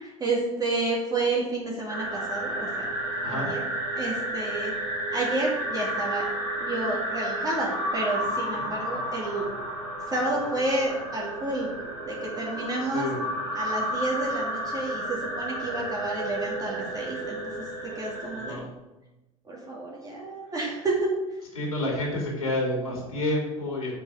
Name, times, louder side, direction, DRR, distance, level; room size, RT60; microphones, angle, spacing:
voice 1, 0.0-2.8 3.2-3.6 3.9-4.7 5.1-6.2 6.6-9.4 10.1-11.7 12.1-13.1 13.5-17.4 17.9-18.6 19.5-21.1, right 2 dB, 20° right, -3 dB, 3.0 m, -30 dB
sound 1, 1.9-18.5, right 1 dB, 80° right, 3.5 m, -32 dB
voice 2, 18.3-18.7 21.5-23.9, left 1 dB, 80° left, -2 dB, 3.2 m, -29 dB
8.4 x 7.3 x 5.0 m, 1.0 s
figure-of-eight pair, 70°, 18 cm